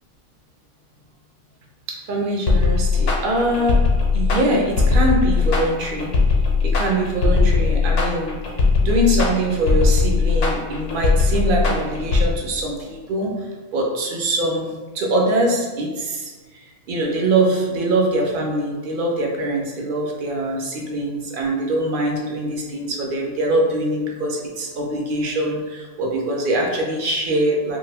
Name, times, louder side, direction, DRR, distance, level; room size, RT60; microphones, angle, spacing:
voice 1, 1.9-3.8 4.1-6.1 6.6-8.4 8.8-16.6 16.9-27.8, right 1 dB, 60° right, 0 dB, 0.6 m, -23 dB
sound 1, 2.5-12.3, left 4 dB, 75° left, 1.0 m, -18 dB
2.8 x 2.3 x 3.3 m, 1.3 s
omnidirectional pair, 1.3 m